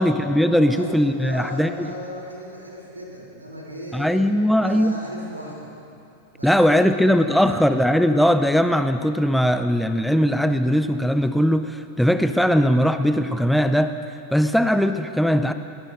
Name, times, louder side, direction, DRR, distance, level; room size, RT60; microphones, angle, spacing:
voice 1, 0.0-1.9 3.9-5.0 6.4-13.9 14.3-15.5, equal, ahead, 9 dB, 0.4 m, -19 dB
voice 2, 0.7-4.3 4.6-5.7 6.3-7.6, equal, 80° right, -3 dB, 3.3 m, -37 dB
22.0 x 18.5 x 2.6 m, 2.7 s
figure-of-eight pair, 90°, 0 cm